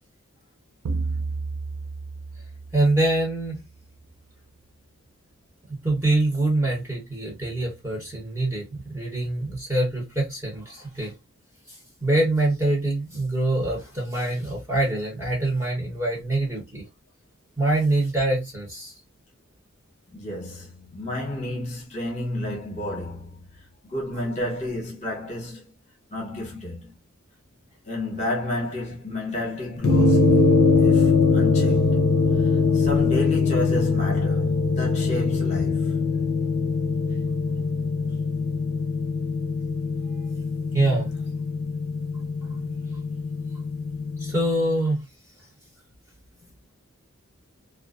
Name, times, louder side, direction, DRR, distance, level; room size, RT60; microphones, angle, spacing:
sound 1, 0.8-3.6, right 3 dB, 90° right, 0.4 m, -32 dB
voice 1, 2.7-3.6 5.8-11.1 11.7-16.8 17.6-18.9 40.7-41.1 42.5-42.6 44.2-45.0, right 2 dB, 15° right, 1.0 m, -24 dB
voice 2, 20.1-23.4 23.8-25.7 26.1-26.9 27.8-30.4 30.8-32.0 32.4-36.1 37.6-37.7, left 1 dB, 35° left, 0.9 m, -31 dB
sound 2, 29.8-44.4, left 4 dB, 80° left, 0.4 m, -22 dB
2.4 x 2.2 x 2.4 m
head